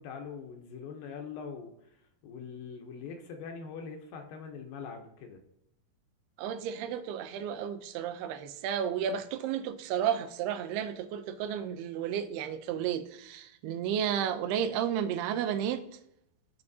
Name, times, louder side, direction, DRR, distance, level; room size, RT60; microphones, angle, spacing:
voice 1, 0.0-5.4, left 5 dB, 75° left, 2.3 m, -43 dB
voice 2, 6.4-15.8, right 9 dB, 85° right, 2.6 m, -32 dB
16.5 x 5.6 x 2.7 m
omnidirectional pair, 4.6 m